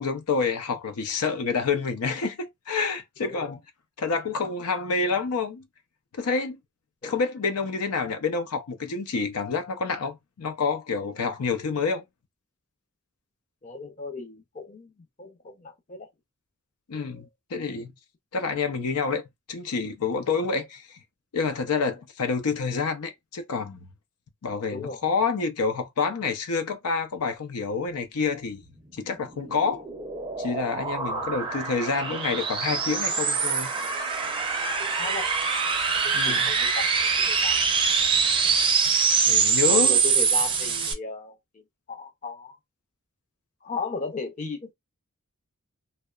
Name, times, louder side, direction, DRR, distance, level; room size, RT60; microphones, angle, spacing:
voice 1, 0.0-3.6 4.0-5.7 6.1-6.6 7.0-12.0 16.9-17.9 18.3-19.2 19.5-21.0 21.3-23.8 24.4-28.6 29.0-29.9 30.4-33.7 36.1-36.5 39.3-40.0, left 5 dB, 85° left, 0.6 m, -28 dB
voice 2, 3.2-3.6 7.0-7.1 13.6-14.9 15.2-16.1 16.9-17.3 24.7-25.0 31.0-31.3 34.8-35.3 36.0-37.6 39.7-41.4 41.9-42.6 43.6-44.7, left 4 dB, 35° left, 0.5 m, -36 dB
sound 1, 29.2-40.9, right 5 dB, 20° right, 0.4 m, -24 dB
2.8 x 2.1 x 2.3 m
head